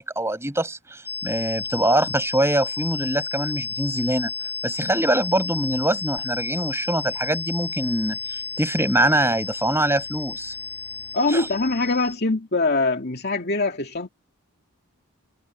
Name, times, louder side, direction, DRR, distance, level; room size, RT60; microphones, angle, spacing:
voice 1, 0.0-4.3 4.6-10.5 11.3-11.4, right 1 dB, 10° right, 6.9 m, -24 dB
sound 1, 1.1-12.2, left 4 dB, 10° left, 3.2 m, -32 dB
voice 2, 11.1-14.1, left 3 dB, 45° left, 2.6 m, -23 dB
head